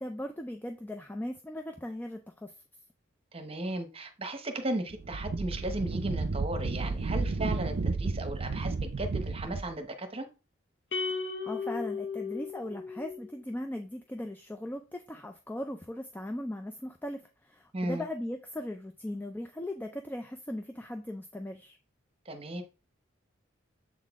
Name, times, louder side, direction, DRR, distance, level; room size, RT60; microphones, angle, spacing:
voice 1, 0.0-2.6 11.4-21.8, left 1 dB, 10° left, 5 dB, 0.4 m, -38 dB
voice 2, 3.3-10.3 17.7-18.0 22.3-22.6, right 1 dB, 30° right, 7 dB, 0.9 m, -35 dB
Wind, 4.9-9.7, right 3 dB, 55° right, 0.5 m, -32 dB
sound 1, 10.9-13.4, left 5 dB, 60° left, 0.8 m, -35 dB
7.3 x 4.0 x 3.5 m, 0.31 s
head